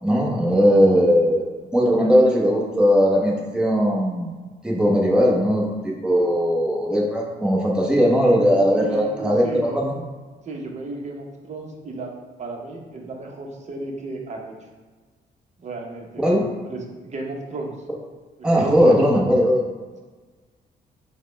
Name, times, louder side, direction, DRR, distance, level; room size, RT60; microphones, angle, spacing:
voice 1, 0.0-1.4 1.7-4.3 4.6-9.9 16.2-16.4 18.4-19.6, equal, 5° right, -3 dB, 0.9 m, -18 dB
voice 2, 8.7-9.8 10.4-12.1 12.4-14.5 15.6-17.7 18.4-19.0, right 2 dB, 40° right, 0 dB, 0.8 m, -34 dB
4.8 x 2.2 x 3.3 m, 1.3 s
cardioid pair, 80°, 18 cm